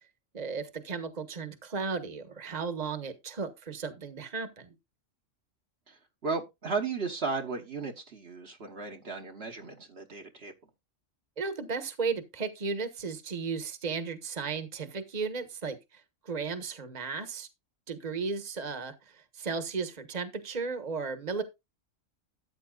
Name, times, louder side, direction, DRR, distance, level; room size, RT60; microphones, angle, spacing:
voice 1, 0.3-4.7 11.4-17.5 17.9-21.4, right 5 dB, 35° right, 1.4 m, -35 dB
voice 2, 5.9-10.5, right 4 dB, 55° right, 1.5 m, -35 dB
13.5 x 8.8 x 2.4 m
omnidirectional pair, 1.3 m